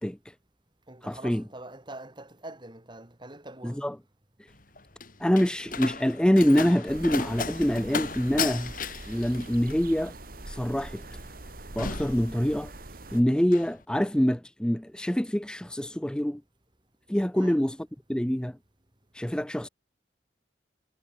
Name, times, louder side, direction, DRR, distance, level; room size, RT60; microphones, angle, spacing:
voice 1, 0.0-0.3 1.0-1.4 3.6-3.9 5.2-8.7 9.1-10.1 10.5-11.0 11.8-12.7 13.1-16.4 17.1-17.8 18.1-18.6 19.1-19.7, equal, 5° left, 0.5 m, -25 dB
voice 2, 0.9-3.8 17.3-17.6, right 2 dB, 25° right, 4.0 m, -44 dB
Slam, 4.5-12.9 13.2-13.7, left 5 dB, 50° left, 4.4 m, -36 dB
sound 1, 6.9-13.2, right 2 dB, 50° right, 1.9 m, -43 dB
head